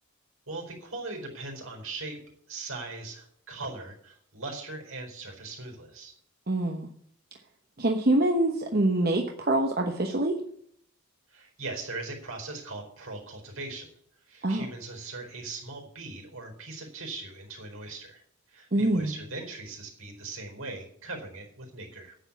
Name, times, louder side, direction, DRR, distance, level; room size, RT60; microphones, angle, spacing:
voice 1, 0.5-2.2 2.5-6.1 11.3-13.9 14.3-18.2 18.5-22.2, right 3 dB, 70° right, 1 dB, 4.4 m, -40 dB
voice 2, 6.5-6.9 7.8-10.4 14.4-14.7 18.7-19.1, right 1 dB, 45° right, 3 dB, 1.1 m, -25 dB
10.0 x 8.1 x 8.3 m, 0.65 s
head